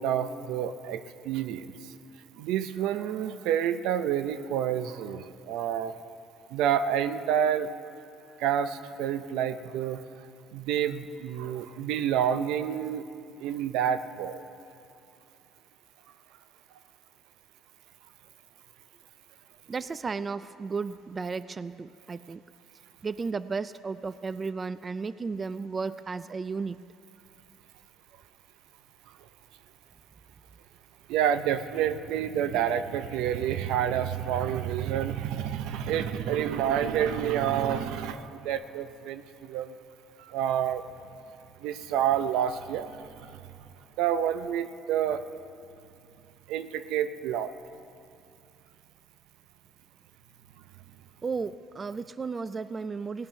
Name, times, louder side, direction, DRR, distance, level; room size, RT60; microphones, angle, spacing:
voice 1, 0.0-1.7 2.4-5.9 6.5-7.7 8.4-10.0 10.5-13.0 13.4-14.4 31.1-39.2 39.5-39.7 40.2-40.8 41.6-42.9 44.0-45.2 46.5-47.5, right 9 dB, 80° right, 12 dB, 0.6 m, -28 dB
voice 2, 19.7-22.4 23.0-26.8 51.2-53.3, right 4 dB, 30° right, 15 dB, 0.3 m, -34 dB
17.5 x 11.5 x 5.7 m, 2.7 s
cardioid pair, 105°, 0 cm